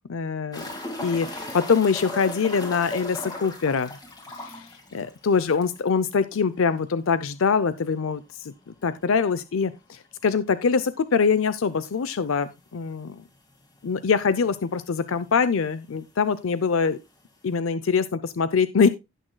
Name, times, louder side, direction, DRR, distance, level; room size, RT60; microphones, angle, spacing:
voice 1, 0.1-0.7 1.0-4.0 4.4-4.7 4.9-8.5 8.8-13.2 13.8-17.0 17.4-18.9, left 5 dB, 80° left, 0.5 m, -24 dB
sound 1, 0.5-5.9 6.2-6.3 6.6-6.7 9.5-9.6 11.3-11.4 12.2-12.3 12.5-12.6 13.5-13.6 13.8-14.4 15.3-15.4, left 1 dB, 20° left, 2.0 m, -37 dB
17.0 x 6.3 x 2.2 m
head